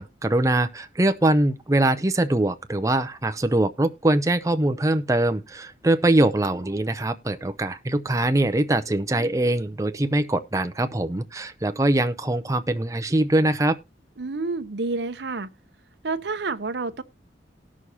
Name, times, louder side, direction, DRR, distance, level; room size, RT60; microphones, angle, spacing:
voice 1, 0.0-13.8, right 1 dB, 15° right, 0.6 m, -23 dB
voice 2, 14.2-15.5 16.0-17.0, right 3 dB, 70° right, 0.7 m, -29 dB
18.5 x 6.3 x 2.7 m
head